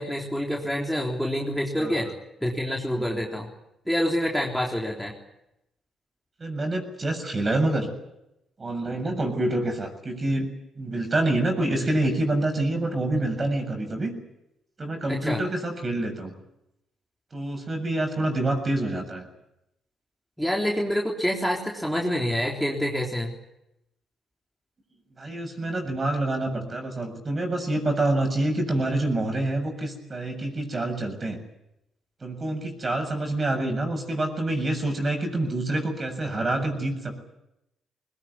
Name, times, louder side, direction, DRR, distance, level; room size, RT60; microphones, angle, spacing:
voice 1, 0.0-2.1 2.4-3.5 3.9-5.2 15.1-15.4 20.4-23.3, equal, ahead, -1 dB, 3.7 m, -27 dB
voice 2, 6.4-7.9 8.6-10.5 10.8-14.1 14.8-16.3 17.3-19.3 25.2-31.4 32.2-37.2, right 2 dB, 30° right, 5 dB, 7.4 m, -27 dB
21.5 x 20.5 x 9.8 m, 0.86 s
cardioid pair, 90°, 0 cm